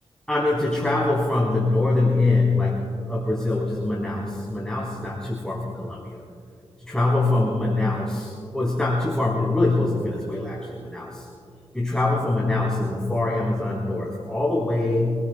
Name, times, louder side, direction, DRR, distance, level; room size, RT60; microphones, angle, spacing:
voice 1, 0.3-6.2 6.8-11.3 11.7-15.2, left 2 dB, 5° left, -5 dB, 3.7 m, -24 dB
27.0 x 19.0 x 2.2 m, 2.4 s
cardioid pair, 75°, 11 cm